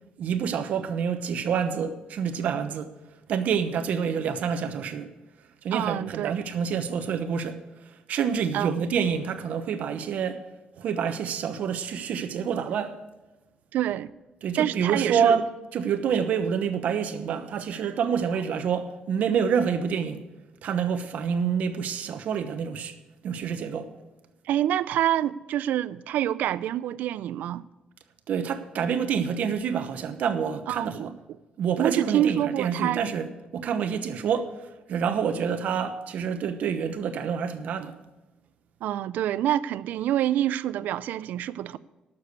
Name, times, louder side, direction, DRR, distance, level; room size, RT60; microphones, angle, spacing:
voice 1, 0.2-2.9 3.3-5.1 5.6-7.6 8.1-10.4 10.8-13.0 14.4-20.2 20.6-22.9 23.2-23.9 28.3-31.1 31.6-34.6 34.9-38.0, right 7 dB, 60° right, 1.0 m, -27 dB
voice 2, 5.7-6.4 8.5-8.9 13.7-14.1 14.6-15.4 24.5-27.7 30.7-31.1 31.8-33.0 38.8-41.8, right 11 dB, 80° right, 0.4 m, -27 dB
12.0 x 7.0 x 8.1 m
cardioid pair, 160°, 3 cm